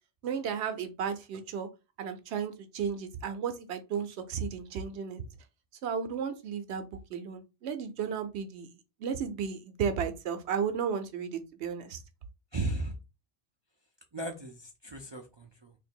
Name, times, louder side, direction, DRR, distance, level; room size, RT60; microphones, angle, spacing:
voice 1, 0.2-1.7 2.0-5.2 5.8-8.7 9.0-12.0, right 7 dB, 70° right, 9 dB, 0.9 m, -34 dB
voice 2, 12.5-13.0 14.1-15.7, right 2 dB, 45° right, 2 dB, 0.3 m, -36 dB
2.9 x 2.6 x 4.3 m, 0.28 s
omnidirectional pair, 1.2 m